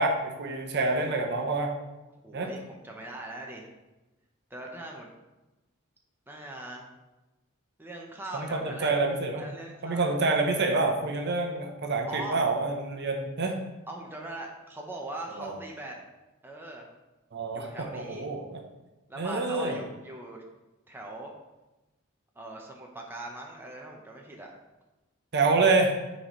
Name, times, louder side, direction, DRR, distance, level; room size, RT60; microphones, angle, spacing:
voice 1, 0.0-1.7 2.3-2.5 8.3-9.5 9.8-13.6 15.3-15.6 17.3-18.6 19.2-19.8 25.3-25.9, right 3 dB, 55° right, 3 dB, 0.8 m, -27 dB
voice 2, 2.2-3.7 4.5-5.1 6.3-6.9 7.8-8.9 9.4-10.3 12.1-12.4 13.9-16.0 16.4-16.9 17.5-18.3 19.1-20.4 20.9-21.3 22.4-24.5, right 2 dB, 10° right, -1 dB, 0.8 m, -40 dB
9.6 x 4.1 x 3.1 m, 1.1 s
head